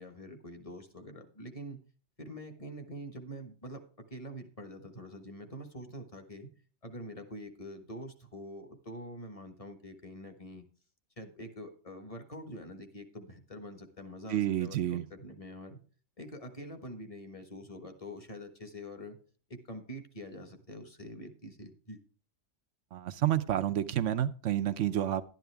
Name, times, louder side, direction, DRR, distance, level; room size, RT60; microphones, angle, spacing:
voice 1, 0.0-1.8 2.2-3.8 4.1-6.5 6.8-10.6 11.2-15.8 16.2-19.2 19.5-22.0, equal, 30° left, 7 dB, 1.5 m, -45 dB
voice 2, 14.3-15.0 22.9-25.2, right 11 dB, 75° right, 13 dB, 1.0 m, -29 dB
12.0 x 10.5 x 3.4 m, 0.40 s
omnidirectional pair, 1.3 m